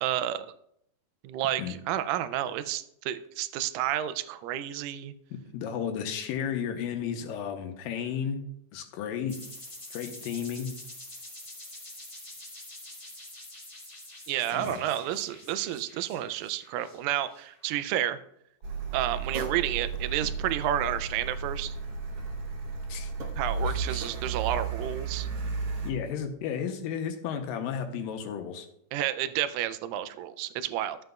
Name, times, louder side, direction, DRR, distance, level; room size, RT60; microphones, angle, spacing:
voice 1, 0.0-0.5 1.2-5.1 14.3-18.2 18.9-21.7 23.4-25.3 28.9-31.0, right 12 dB, 80° right, 12 dB, 2.1 m, -30 dB
voice 2, 5.3-8.5 8.7-9.4 9.9-10.7 14.5-14.8 22.9-23.1 23.7-24.1 25.8-28.7, left 8 dB, 80° left, 5 dB, 2.4 m, -33 dB
sound 1, 9.3-17.8, left 1 dB, 25° left, 0.7 m, -46 dB
Car, 18.6-25.9, right 4 dB, 60° right, 1.6 m, -33 dB
13.0 x 7.8 x 2.3 m, 0.73 s
omnidirectional pair, 4.2 m